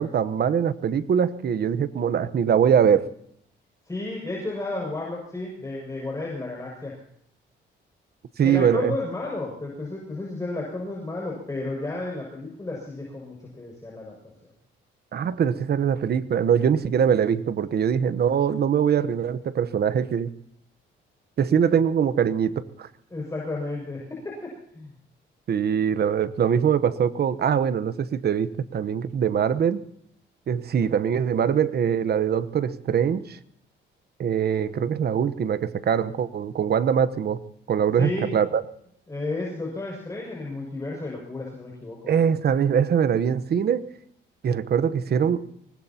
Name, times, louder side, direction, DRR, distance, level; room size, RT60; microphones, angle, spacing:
voice 1, 0.0-3.1 8.4-8.9 15.1-20.3 21.4-22.9 25.5-29.8 30.5-33.4 34.2-37.4 37.7-38.6 42.1-43.9 44.4-45.4, right 8 dB, 55° right, 14 dB, 1.1 m, -22 dB
voice 2, 3.8-6.9 8.4-14.1 14.4-14.5 23.1-24.9 38.0-38.3 39.1-42.1, left 2 dB, 15° left, -2 dB, 6.4 m, -32 dB
24.5 x 20.0 x 2.9 m, 0.69 s
cardioid pair, 90°, 20 cm